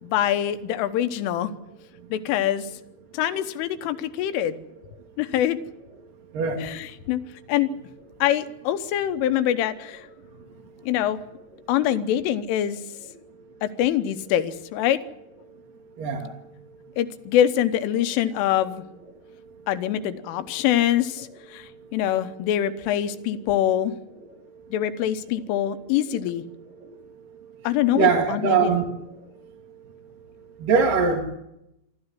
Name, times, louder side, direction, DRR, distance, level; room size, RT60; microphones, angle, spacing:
voice 1, 0.0-1.5 2.1-2.7 3.1-4.6 5.2-5.6 6.6-7.2 7.5-7.7 8.2-10.1 10.8-11.2 11.7-12.8 13.6-15.0 17.0-18.9 19.7-24.0 24.7-26.4 27.7-28.8, left 11 dB, 80° left, 11 dB, 3.5 m, -24 dB
voice 2, 16.0-16.3 27.9-29.0 30.6-31.2, right 5 dB, 50° right, 0 dB, 3.2 m, -21 dB
25.0 x 13.0 x 9.8 m, 0.85 s
omnidirectional pair, 5.9 m